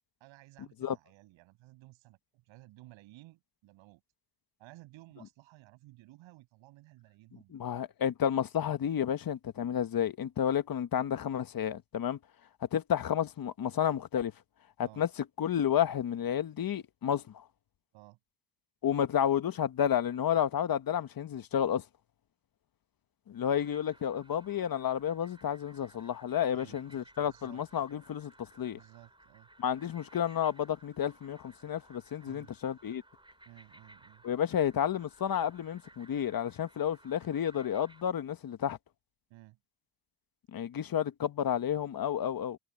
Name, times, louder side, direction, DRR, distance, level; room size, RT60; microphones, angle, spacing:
voice 1, 0.2-4.0 4.6-7.6 14.8-15.0 17.9-18.2 26.5-27.6 28.7-29.5 32.3-32.5 33.4-34.2 39.3-39.6, right 19 dB, 90° right, 6.6 m, -56 dB
voice 2, 7.5-12.2 12.7-14.3 14.8-15.1 15.4-17.4 18.8-21.8 23.3-28.8 29.6-33.0 34.2-38.8 40.5-42.6, left 9 dB, 50° left, 1.4 m, -31 dB
sound 1, 23.5-38.0, right 1 dB, 10° right, 5.1 m, -60 dB
supercardioid pair, 75°, 45 cm